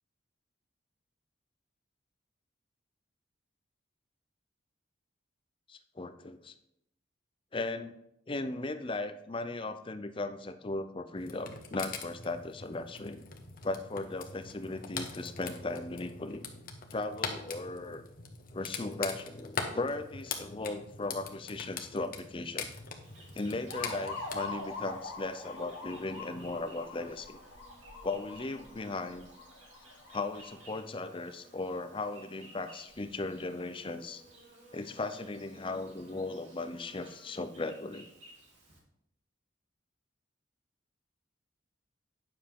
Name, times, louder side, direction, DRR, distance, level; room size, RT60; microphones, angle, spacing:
voice 1, 5.7-6.5 7.5-7.9 8.3-13.3 13.6-16.5 16.9-18.0 18.5-22.7 23.3-27.4 28.0-29.3 30.1-34.2 34.7-38.1, left 2 dB, 25° left, 9 dB, 0.5 m, -37 dB
sound 1, 11.2-24.4, left 5 dB, 45° left, 1.0 m, -42 dB
Insect, 23.0-38.8, right 1 dB, 75° right, 2.7 m, -56 dB
sound 2, 23.7-30.6, left 3 dB, 75° left, 1.4 m, -44 dB
9.5 x 6.8 x 3.6 m, 0.80 s
head